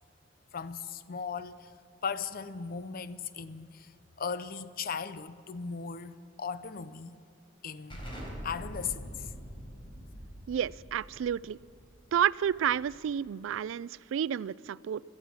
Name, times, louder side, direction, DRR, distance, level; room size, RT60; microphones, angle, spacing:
voice 1, 0.5-1.7 2.0-3.9 4.2-7.2 7.6-8.0 8.4-9.3, left 6 dB, 50° left, 0.6 m, -37 dB
Explosion, 7.9-13.3, equal, 25° left, 4.1 m, -44 dB
voice 2, 10.5-11.6 12.1-15.0, right 9 dB, 85° right, 0.3 m, -30 dB
17.5 x 13.0 x 6.2 m
head